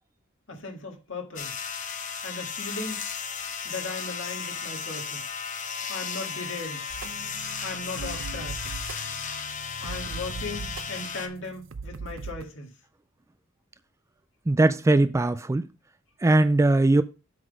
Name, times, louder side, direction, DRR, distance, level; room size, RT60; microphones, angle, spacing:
voice 1, 0.5-1.6 2.2-3.0 3.6-5.3 5.9-6.9 7.6-8.6 9.8-12.7, left 3 dB, 65° left, 1.8 m, -37 dB
sound 1, 1.4-11.3, left 6 dB, 40° left, 0.8 m, -35 dB
sound 2, 6.9-12.5, right 4 dB, 70° right, 0.6 m, -39 dB
voice 2, 14.5-15.7 16.2-17.0, right 2 dB, 15° right, 0.3 m, -20 dB
7.8 x 3.9 x 5.2 m
head